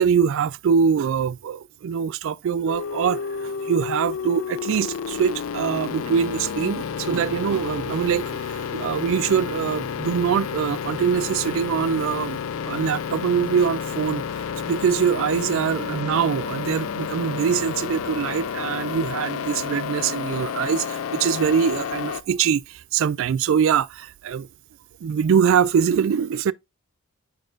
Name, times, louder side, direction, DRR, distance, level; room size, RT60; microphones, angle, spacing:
voice 1, 0.0-12.4 12.6-14.2 14.7-24.5 25.0-26.5, right 7 dB, 65° right, 0.3 m, -23 dB
sound 1, 2.7-22.2, left 7 dB, 75° left, 0.4 m, -30 dB
9.1 x 4.4 x 2.5 m
head